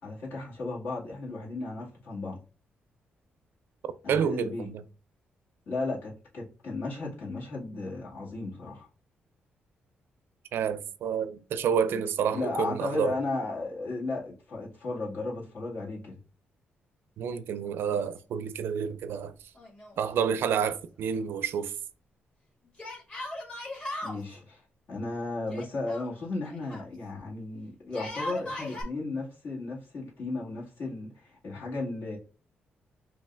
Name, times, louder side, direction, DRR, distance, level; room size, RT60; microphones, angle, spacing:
voice 1, 0.0-2.4 4.0-4.7 5.7-8.9 11.9-12.0 12.3-16.2 24.0-24.6 24.9-32.2, left 3 dB, 65° left, 2.1 m, -35 dB
voice 2, 4.1-4.8 10.5-13.1 17.2-19.3 20.0-21.7, right 7 dB, 80° right, 0.4 m, -29 dB
Yell, 19.6-20.4 20.7-20.8 22.8-24.2 25.5-26.9 27.8-28.8, left 1 dB, 35° left, 1.9 m, -38 dB
5.4 x 2.8 x 2.5 m
cardioid pair, 125°, 4 cm